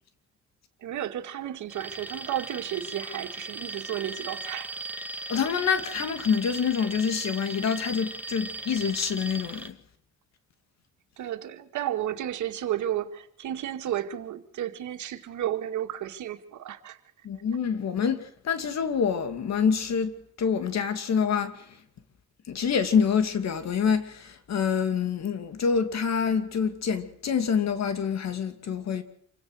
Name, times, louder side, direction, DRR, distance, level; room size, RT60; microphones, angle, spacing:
voice 1, 0.8-4.7 11.2-17.0, right 11 dB, 75° right, 2.3 m, -32 dB
Alarm, 1.7-9.7, right 2 dB, 5° right, 1.8 m, -38 dB
voice 2, 5.3-9.8 17.2-21.8 22.5-29.0, left 6 dB, 60° left, 2.6 m, -26 dB
27.5 x 16.5 x 6.5 m
cardioid pair, 90°, 30 cm